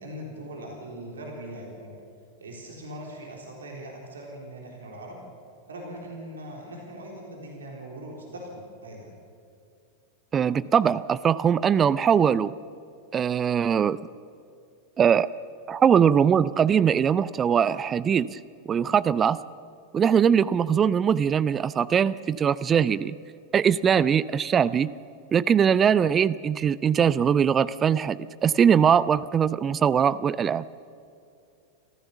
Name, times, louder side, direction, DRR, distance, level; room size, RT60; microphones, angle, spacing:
voice 1, 0.0-1.9 2.4-5.2 5.7-9.1, right 1 dB, 70° right, 0 dB, 3.8 m, -40 dB
voice 2, 10.3-12.5 13.1-14.0 15.0-15.3 15.7-18.4 18.7-19.4 19.9-23.2 23.5-24.9 25.3-30.6, right 7 dB, 25° right, 19 dB, 0.4 m, -21 dB
27.0 x 15.0 x 7.1 m, 2.5 s
figure-of-eight pair, 90°, 0 cm